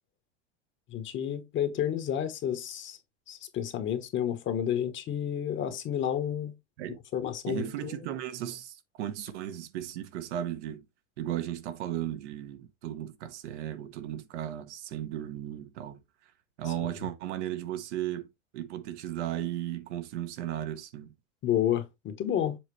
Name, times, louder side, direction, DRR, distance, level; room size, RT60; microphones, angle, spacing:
voice 1, 0.9-3.0 3.3-6.5 7.1-8.0 16.8-16.9 21.4-22.6, left 10 dB, 35° left, 1.1 m, -30 dB
voice 2, 7.5-10.8 11.2-16.0 16.6-21.1, right 12 dB, 70° right, 1.1 m, -35 dB
7.4 x 4.0 x 3.2 m
supercardioid pair, 120°, 35 cm